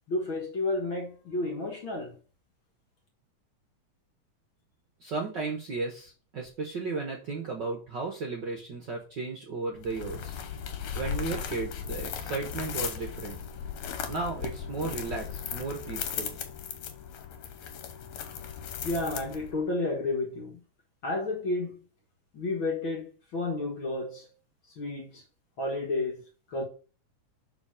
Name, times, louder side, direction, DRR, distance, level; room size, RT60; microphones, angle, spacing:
voice 1, 0.1-2.2 18.8-20.6 21.0-21.9 22.3-24.3 24.8-25.2 25.6-26.2 26.5-26.6, left 2 dB, 50° left, 1.9 m, -31 dB
voice 2, 5.0-10.4 10.9-13.4 14.1-16.4, right 3 dB, 50° right, 1.4 m, -34 dB
sound 1, 9.8-19.7, left 8 dB, 70° left, 2.3 m, -37 dB
7.1 x 4.7 x 4.9 m
omnidirectional pair, 3.5 m